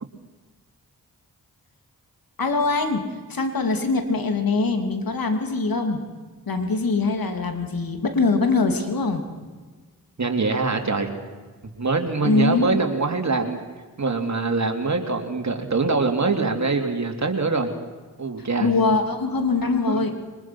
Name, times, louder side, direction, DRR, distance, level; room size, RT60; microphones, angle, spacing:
voice 1, 2.4-6.0 6.5-9.2 12.2-12.7 18.6-20.1, left 3 dB, 70° left, 5 dB, 3.2 m, -23 dB
voice 2, 10.2-11.1 11.8-13.6 14.0-17.7 18.2-18.7 19.9-20.1, right 3 dB, 50° right, 4 dB, 3.2 m, -23 dB
23.5 x 21.0 x 6.2 m, 1.3 s
cardioid pair, 45°, 37 cm